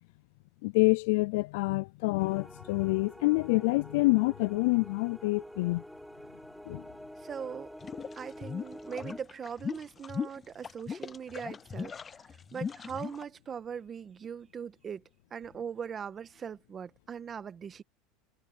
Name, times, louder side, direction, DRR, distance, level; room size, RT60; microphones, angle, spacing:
voice 1, 0.6-5.8 6.7-6.8, left 24 dB, 70° left, 0.4 m, -27 dB
sound 1, 2.2-9.2, equal, ahead, 3.9 m, -47 dB
voice 2, 7.2-7.7 8.2-11.9 12.5-15.0 15.3-17.8, right 7 dB, 30° right, 1.5 m, -40 dB
sound 2, 7.8-13.2, left 6 dB, 25° left, 0.6 m, -38 dB
supercardioid pair, 115°, 0 cm